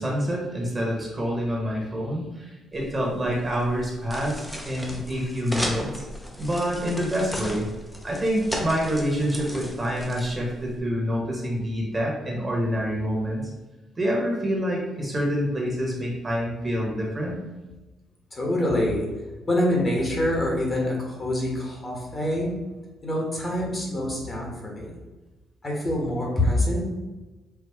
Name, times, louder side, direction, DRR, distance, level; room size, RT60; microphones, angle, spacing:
voice 1, 0.0-6.1 6.4-7.6 8.0-13.5 14.0-17.4, equal, 25° right, -2 dB, 1.2 m, -27 dB
sound 1, 2.7-10.8, equal, 10° left, 0.7 m, -36 dB
voice 2, 18.3-19.1 19.5-22.5 23.0-25.0 25.6-26.9, left 1 dB, 30° left, -1 dB, 1.2 m, -25 dB
4.6 x 2.4 x 3.5 m, 1.2 s
cardioid pair, 90°, 0 cm